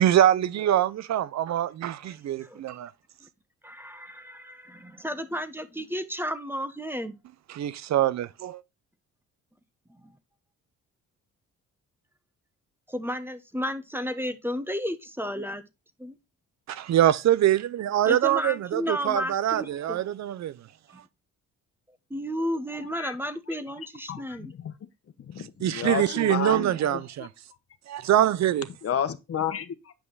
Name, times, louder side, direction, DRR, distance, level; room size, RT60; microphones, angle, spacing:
voice 1, 0.0-2.9 7.5-8.6 16.7-20.5 25.6-27.3 27.9-28.7, right 12 dB, 65° right, 0.7 m, -24 dB
voice 2, 2.0-2.6 3.2-3.3 3.6-7.2 9.9-10.1 12.9-15.7 16.0-16.2 18.0-20.0 20.9-21.0 22.1-24.5, equal, 5° right, 1.2 m, -33 dB
voice 3, 24.1-24.7 25.2-27.0 28.8-29.9, left 8 dB, 50° left, 1.2 m, -31 dB
8.9 x 5.5 x 4.0 m
cardioid pair, 90°, 30 cm